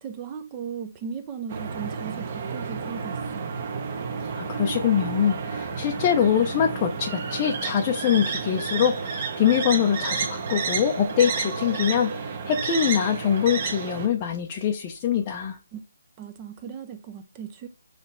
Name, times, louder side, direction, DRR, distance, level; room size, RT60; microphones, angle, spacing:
voice 1, 0.0-3.5 15.7-15.8 16.2-17.7, right 7 dB, 20° right, 0.6 m, -37 dB
sound 1, 1.5-14.1, right 5 dB, 35° right, 1.2 m, -31 dB
voice 2, 4.3-15.6, left 8 dB, 25° left, 0.6 m, -24 dB
6.7 x 3.3 x 4.3 m
hypercardioid pair, 160°, 0 cm